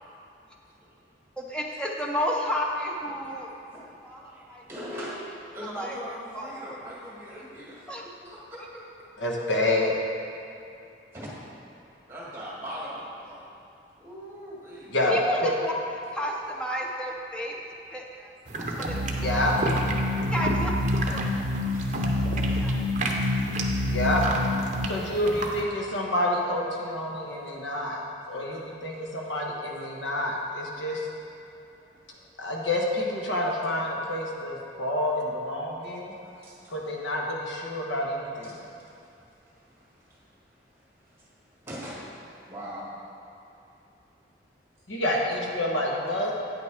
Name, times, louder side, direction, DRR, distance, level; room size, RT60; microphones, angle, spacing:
voice 1, 1.4-3.5 4.0-4.2 4.5-4.6 5.7-6.0 6.3-6.7 7.9-8.0 15.1-15.7 16.1-17.5 17.9-19.5 20.1-20.7 21.1-21.3 22.6-22.8, equal, 5° left, -1 dB, 0.7 m, -31 dB
voice 2, 3.1-8.8 11.1-11.3 11.8-13.4 14.0-14.9 18.6-18.8 19.4-19.6 21.7-23.2 28.9-29.0 31.8-32.3 36.2-36.7 38.4-38.5 38.8-39.0 39.5-40.3 41.0-41.3 41.6-43.0, equal, 15° right, -6 dB, 1.8 m, -42 dB
voice 3, 9.2-9.9 14.9-15.1 15.4-15.5 19.2-19.5 23.9-24.2 24.9-28.0 28.3-31.1 32.4-36.1 36.7-38.6 44.9-46.3, left 1 dB, 85° left, -1 dB, 1.3 m, -28 dB
sound 1, 18.5-25.6, right 2 dB, 40° right, 0.7 m, -33 dB
sound 2, 18.9-24.9, left 1 dB, 85° right, 0.5 m, -27 dB
9.0 x 5.8 x 4.7 m, 2.7 s
head